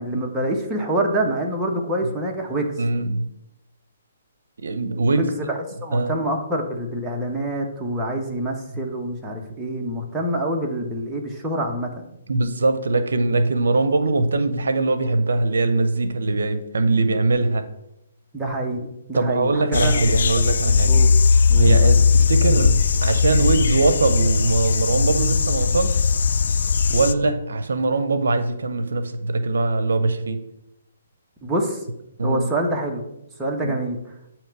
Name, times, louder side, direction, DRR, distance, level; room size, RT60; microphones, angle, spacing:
voice 1, 0.0-2.7 5.2-12.1 18.3-20.1 20.9-21.1 21.5-21.9 31.4-31.8 32.2-33.0 33.4-34.0, right 1 dB, 10° right, -1 dB, 0.8 m, -26 dB
voice 2, 2.8-3.3 4.6-5.5 5.9-6.1 12.3-17.6 19.1-21.0 21.6-26.1 26.9-30.4 32.2-32.5 33.6-33.7, right 3 dB, 80° right, 11 dB, 0.5 m, -21 dB
sound 1, 19.7-27.1, left 5 dB, 65° left, 0.3 m, -19 dB
8.6 x 2.9 x 4.6 m, 0.86 s
hypercardioid pair, 150°, 0 cm